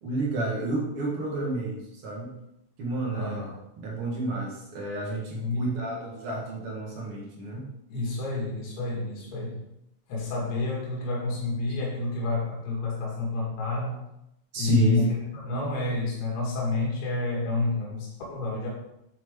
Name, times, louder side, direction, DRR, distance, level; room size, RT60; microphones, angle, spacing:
voice 1, 0.0-2.3 2.8-7.6 14.5-15.0, right 2 dB, 50° right, -2 dB, 1.8 m, -30 dB
voice 2, 3.1-3.6 5.3-5.7 7.9-9.7 10.1-14.0 14.6-18.7, left 2 dB, 85° left, -3 dB, 3.7 m, -29 dB
7.6 x 7.3 x 3.6 m, 0.84 s
omnidirectional pair, 4.4 m